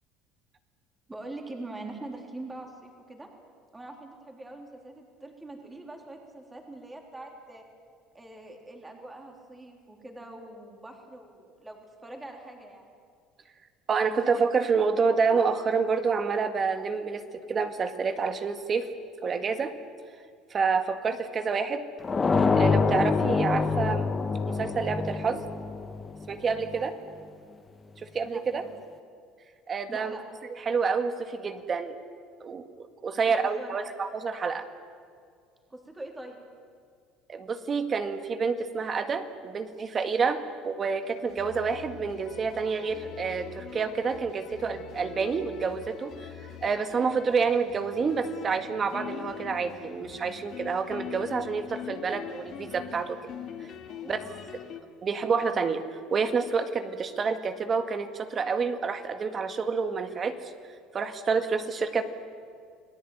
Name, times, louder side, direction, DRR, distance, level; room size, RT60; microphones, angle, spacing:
voice 1, 1.1-3.3 3.7-7.6 8.1-12.9 26.6-26.9 28.2-28.7 29.9-30.2 33.1-33.9 35.7-36.4 53.9-54.4, right 2 dB, 10° right, 2 dB, 3.8 m, -43 dB
voice 2, 13.9-17.2 17.5-18.9 19.2-19.8 20.5-21.8 22.5-24.1 24.5-25.4 26.3-26.9 28.0-28.6 29.7-30.2 30.7-32.0 32.4-34.7 37.3-53.2 54.1-54.2 55.0-55.8 56.1-60.4 60.9-62.0, right 5 dB, 30° right, 9 dB, 1.9 m, -28 dB
sound 1, 22.0-26.8, left 4 dB, 20° left, 1.4 m, -26 dB
sound 2, 41.1-54.8, left 9 dB, 50° left, 2.2 m, -43 dB
28.5 x 19.0 x 9.4 m, 2.2 s
cardioid pair, 135°, 0 cm